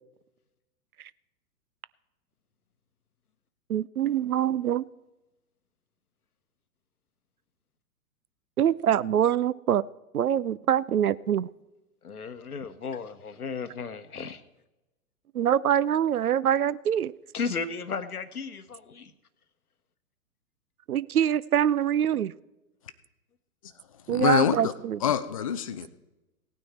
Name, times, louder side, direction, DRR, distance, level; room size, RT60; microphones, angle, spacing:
voice 1, 3.7-4.8 8.6-9.8 10.1-11.5 15.3-17.1 20.9-22.3 24.1-25.0, right 10 dB, 70° right, 20 dB, 0.5 m, -24 dB
voice 2, 12.0-14.4 17.3-19.1, left 5 dB, 75° left, 12 dB, 1.1 m, -34 dB
voice 3, 24.1-24.7 25.0-25.9, left 8 dB, 25° left, 11 dB, 0.4 m, -25 dB
17.0 x 9.3 x 4.3 m, 1.0 s
figure-of-eight pair, 110°, 45 cm